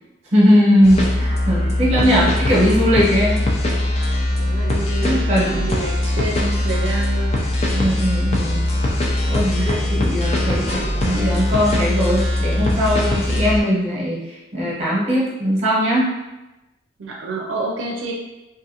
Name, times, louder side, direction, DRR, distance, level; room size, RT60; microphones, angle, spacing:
voice 1, 0.3-3.4 5.0-5.7 7.7-8.7 9.3-16.1, equal, 35° right, -5 dB, 0.9 m, -19 dB
sound 1, 0.8-13.6, left 1 dB, 35° left, 0.4 m, -21 dB
voice 2, 1.6-2.3 4.3-7.5 9.2-10.0 17.0-18.1, right 2 dB, 85° right, -1 dB, 0.4 m, -29 dB
2.5 x 2.5 x 2.7 m, 1.0 s
head